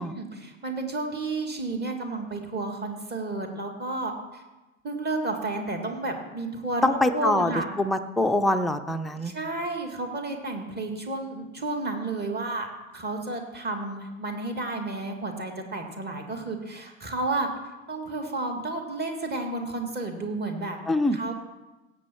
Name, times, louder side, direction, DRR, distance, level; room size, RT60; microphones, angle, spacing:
voice 1, 0.0-4.4 4.8-7.7 9.2-12.7 12.9-17.5 17.9-20.8 21.1-21.3, right 2 dB, 25° right, 4 dB, 2.0 m, -31 dB
voice 2, 6.8-7.5 7.8-9.3 20.9-21.2, left 1 dB, ahead, 5 dB, 0.5 m, -24 dB
16.5 x 7.2 x 4.4 m, 1.1 s
figure-of-eight pair, 75°, 41 cm